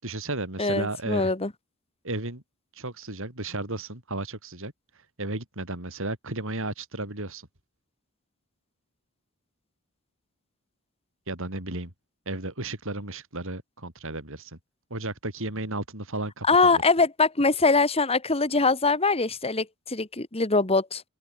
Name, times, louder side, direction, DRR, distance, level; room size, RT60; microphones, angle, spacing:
voice 1, 0.0-1.3 2.0-2.4 2.7-4.7 5.2-7.5 11.3-11.9 12.3-14.6 14.9-16.5 16.7-16.8, right 2 dB, 60° right, 6.0 m, -33 dB
voice 2, 0.6-1.5 16.4-21.0, left 3 dB, 25° left, 1.9 m, -23 dB
open air
head